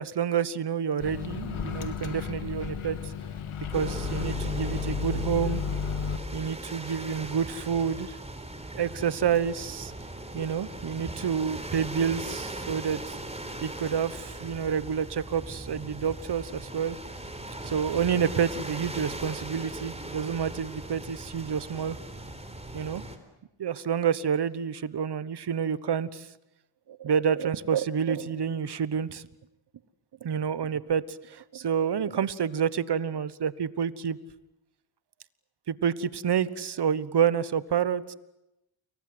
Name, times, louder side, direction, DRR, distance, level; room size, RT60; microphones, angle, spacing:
voice 1, 0.0-3.1 3.7-5.6 6.3-8.2 8.7-9.9 10.3-13.2 13.6-17.0 17.6-22.0 22.7-23.0 23.6-26.3 26.9-29.3 30.2-34.2 35.7-38.1, right 7 dB, 55° right, 17 dB, 1.3 m, -28 dB
Microwave oven, 1.0-6.2, left 6 dB, 80° left, 2.8 m, -33 dB
sound 1, 3.7-23.2, right 1 dB, 15° right, 4.1 m, -39 dB
29.5 x 23.0 x 8.0 m, 0.92 s
cardioid pair, 75°, 49 cm